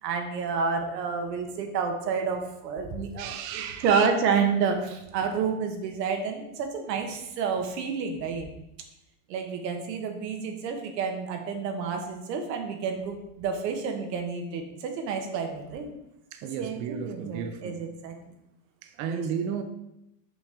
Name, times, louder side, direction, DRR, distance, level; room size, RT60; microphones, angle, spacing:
voice 1, 0.0-8.5 9.3-15.9 16.6-18.3 19.1-19.2, right 5 dB, 85° right, 1.3 m, -29 dB
voice 2, 3.2-4.1 4.4-4.5 16.3-17.8 18.8-19.6, right 7 dB, 40° right, 0.5 m, -33 dB
6.0 x 5.1 x 3.5 m
supercardioid pair, 135°, 48 cm